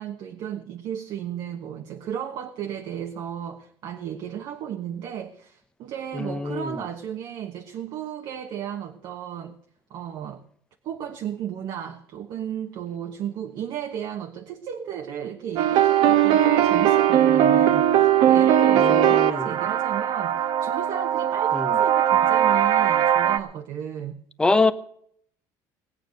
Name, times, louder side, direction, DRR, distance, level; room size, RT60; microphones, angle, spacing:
voice 1, 0.0-9.6 9.9-10.4 10.8-24.2, right 9 dB, 55° right, 1.2 m, -34 dB
voice 2, 6.1-6.7 18.7-19.5 21.5-21.8 24.4-24.7, left 3 dB, 10° left, 0.8 m, -24 dB
sound 1, 15.6-23.4, right 10 dB, 75° right, 1.2 m, -19 dB
19.0 x 8.9 x 6.5 m
cardioid pair, 155°, 9 cm